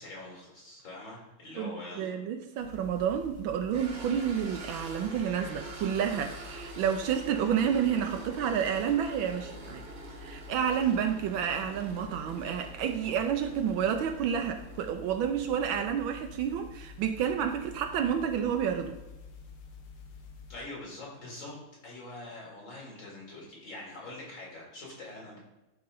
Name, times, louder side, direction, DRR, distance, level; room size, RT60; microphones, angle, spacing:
voice 1, 0.0-2.2 20.5-21.6 21.8-25.4, left 2 dB, 70° left, -4 dB, 3.3 m, -44 dB
voice 2, 1.6-9.8 10.2-19.0, right 8 dB, 80° right, 5 dB, 1.3 m, -30 dB
sound 1, 2.6-20.6, left 5 dB, 85° left, 2.0 m, -48 dB
sound 2, 3.7-14.9, right 3 dB, 35° right, 1.1 m, -46 dB
11.5 x 4.0 x 3.9 m, 1.0 s
omnidirectional pair, 2.2 m